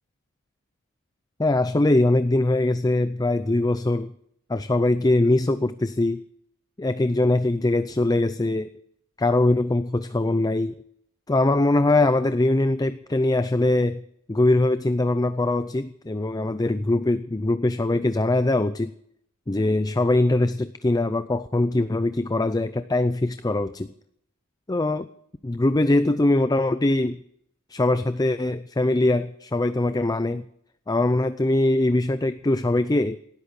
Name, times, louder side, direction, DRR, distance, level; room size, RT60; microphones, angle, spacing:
voice 1, 1.4-4.1 4.5-6.2 6.8-8.7 9.2-10.7 11.3-14.0 14.3-18.9 19.5-23.9 24.7-25.1 25.4-27.2 27.7-30.5 30.9-33.2, left 2 dB, 15° left, 12 dB, 0.5 m, -22 dB
18.5 x 13.0 x 5.4 m, 0.71 s
head